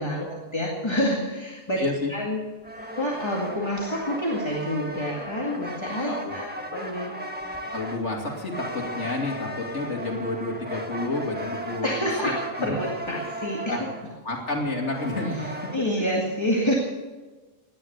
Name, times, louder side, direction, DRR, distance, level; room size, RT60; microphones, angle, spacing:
voice 1, 0.0-1.8 2.1-2.4 3.0-7.1 11.8-13.9 15.7-16.7, equal, 20° left, -2 dB, 2.1 m, -28 dB
voice 2, 1.8-2.1 6.0-6.3 7.7-11.9 12.2-12.3 12.7-12.8 13.1-13.2 13.7-13.9 14.2-15.5, left 2 dB, 60° left, 0 dB, 2.8 m, -30 dB
sound 1, 2.6-15.8, right 1 dB, 10° right, 1.4 m, -36 dB
18.0 x 10.5 x 6.8 m, 1.3 s
omnidirectional pair, 1.3 m